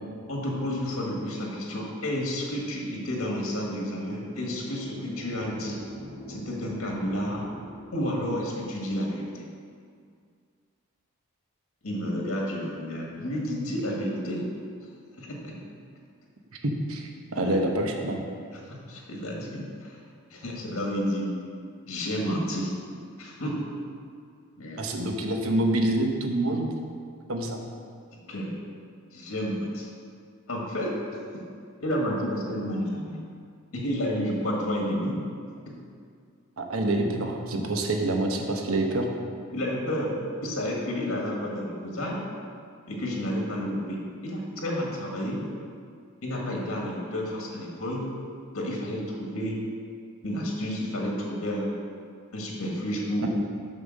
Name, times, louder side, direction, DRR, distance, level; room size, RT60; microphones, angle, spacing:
voice 1, 0.3-5.8 6.3-7.4 7.9-9.5 11.8-14.5 15.2-15.6 17.4-17.5 18.5-20.0 20.3-21.3 21.9-22.7 23.2-23.7 24.6-24.9 28.3-28.5 29.1-29.9 30.5-31.0 31.3-31.4 31.8-33.2 33.7-35.2 35.6-35.7 39.5-40.1 40.4-42.2 42.9-45.4 46.2-48.1 48.5-49.6 50.2-51.7 52.3-53.3, equal, 85° left, -2 dB, 1.6 m, -31 dB
sound 1, 3.9-8.8, left 1 dB, 25° right, 2.2 m, -44 dB
voice 2, 16.6-18.2 24.8-26.7 27.3-27.6 36.6-39.1 53.2-53.3, right 1 dB, 80° right, 2 dB, 1.0 m, -26 dB
6.7 x 5.5 x 6.4 m, 2.2 s
head